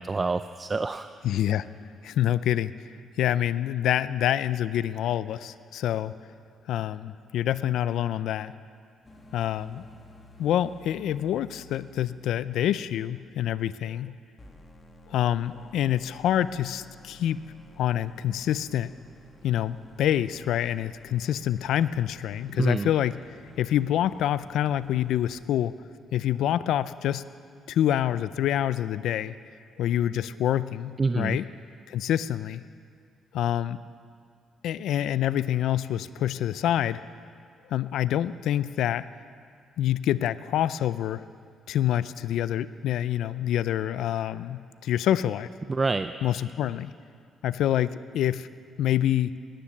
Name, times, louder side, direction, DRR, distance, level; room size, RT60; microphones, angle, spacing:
voice 1, 0.0-1.1 22.6-22.9 31.0-31.4 45.7-46.1, right 3 dB, 30° right, 10 dB, 0.4 m, -27 dB
voice 2, 1.2-1.7 2.0-2.7 3.2-6.1 6.7-8.5 9.3-9.8 10.4-14.1 15.1-17.4 17.8-18.9 19.4-23.2 23.6-25.7 26.1-27.3 27.7-29.4 29.8-31.5 31.9-32.6 33.3-33.8 34.6-37.0 37.7-39.1 39.8-41.2 41.7-45.5 46.2-46.9 47.4-48.5 48.8-49.3, left 11 dB, 80° left, 15 dB, 0.4 m, -26 dB
sound 1, 9.0-14.0 14.4-25.4, left 1 dB, 25° left, 2.0 m, -53 dB
18.5 x 10.0 x 7.3 m, 2.1 s
cardioid pair, 90°, 0 cm